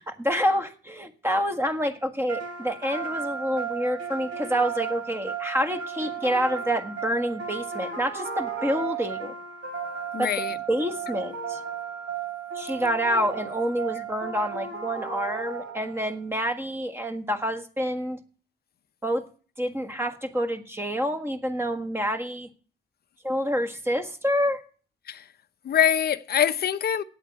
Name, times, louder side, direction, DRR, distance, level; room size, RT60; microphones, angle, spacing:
voice 1, 0.0-9.3 10.2-10.3 10.7-11.6 12.5-18.2 19.0-19.2 19.6-22.5 23.2-24.6, equal, 10° right, 1.5 m, -27 dB
sound 1, 2.3-16.1, right 6 dB, 65° right, 3.5 m, -34 dB
voice 2, 10.1-10.6 15.2-15.3 25.1-25.3 25.6-27.0, left 9 dB, 50° left, 0.7 m, -24 dB
8.7 x 7.9 x 8.1 m
cardioid pair, 90°, 20 cm